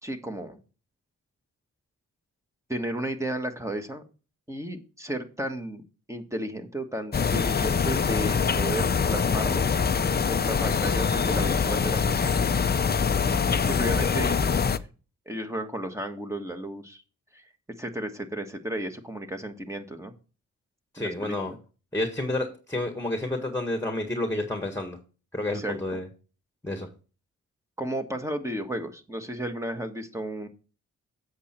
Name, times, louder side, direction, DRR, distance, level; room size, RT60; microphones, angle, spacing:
voice 1, 0.0-0.6 2.7-4.0 4.5-5.8 6.1-9.7 10.3-12.4 13.7-14.4 15.2-17.0 17.3-17.5 17.8-20.1 21.0-21.3 25.5-26.0 27.8-30.5, right 1 dB, 10° right, 6 dB, 1.5 m, -33 dB
sound 1, 7.1-14.8, left 6 dB, 30° left, 0.6 m, -24 dB
voice 2, 20.9-21.5 21.9-25.0 25.3-26.1 26.6-26.9, left 1 dB, 10° left, 5 dB, 1.6 m, -30 dB
8.1 x 6.6 x 4.4 m, 0.34 s
cardioid pair, 75°, 32 cm